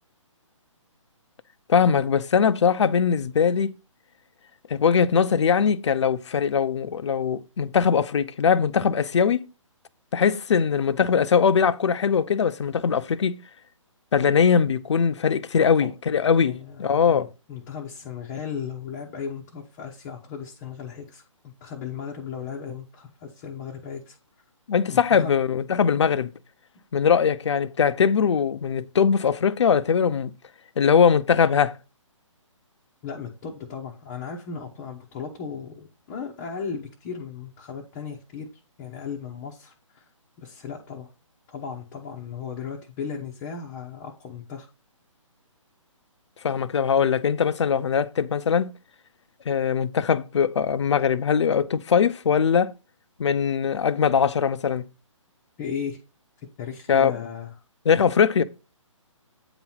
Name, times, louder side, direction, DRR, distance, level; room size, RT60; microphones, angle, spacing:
voice 1, 1.7-3.7 4.7-9.5 10.1-13.4 14.1-17.3 24.7-26.3 26.9-30.3 30.8-31.8 46.4-48.7 49.5-52.7 53.2-54.8 56.9-57.1 57.9-58.4, left 7 dB, 60° left, 0.6 m, -21 dB
voice 2, 16.4-24.2 24.9-25.4 33.0-38.5 38.8-40.0 40.4-41.1 41.5-44.7 55.6-56.0 56.6-57.5, left 6 dB, 20° left, 0.8 m, -36 dB
8.7 x 3.0 x 5.6 m
hypercardioid pair, 160°, 17 cm